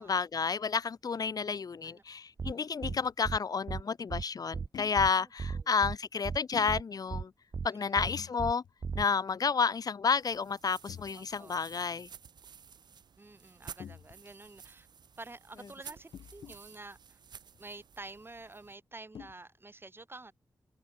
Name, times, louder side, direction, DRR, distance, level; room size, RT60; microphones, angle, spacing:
voice 1, 0.0-7.3 7.6-8.6 9.0-12.1, left 5 dB, 60° left, 0.5 m, -31 dB
sound 1, 2.4-2.5 2.8-3.0 3.2-3.4 3.7-3.8 4.1-4.2 4.5-4.7 5.0-5.1 5.4-6.0 6.2-6.4 6.7-6.8 7.1-7.2 7.5-7.7 8.0-8.1 8.4-8.5 8.8-9.0, right 5 dB, 50° right, 0.6 m, -35 dB
sound 2, 2.9-3.1 4.7-5.0 6.5-6.8 8.1-8.4 8.6-8.9 9.3-9.4 10.9-11.1 13.8-14.5 16.1-16.6 17.5-17.6 19.1-19.3, left 8 dB, 90° left, 0.9 m, -46 dB
voice 2, 5.2-5.7 7.7-8.2 11.1-11.6 13.2-14.9 15.2-17.2 17.6-20.3, right 2 dB, 30° right, 1.6 m, -49 dB
sound 3, 10.1-18.8, right 7 dB, 75° right, 0.9 m, -53 dB
cardioid pair, 45°, 7 cm